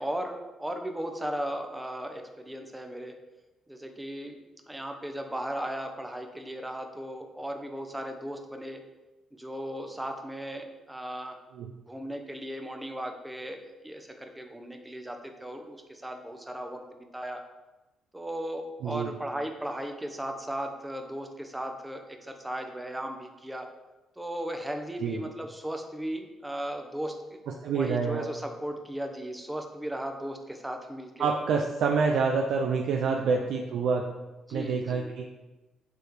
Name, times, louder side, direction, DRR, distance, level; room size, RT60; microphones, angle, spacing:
voice 1, 0.0-3.2 3.7-4.4 4.7-8.8 9.3-11.4 11.9-17.4 18.1-23.7 24.2-27.4 27.7-31.3 33.0-33.4 34.5-35.1, right 1 dB, 10° right, 4 dB, 0.8 m, -36 dB
voice 2, 18.8-19.1 25.0-25.2 27.6-28.3 31.2-34.1 34.5-35.2, right 5 dB, 75° right, 1 dB, 0.5 m, -27 dB
6.8 x 3.4 x 4.6 m, 1.1 s
cardioid pair, 90°, 0 cm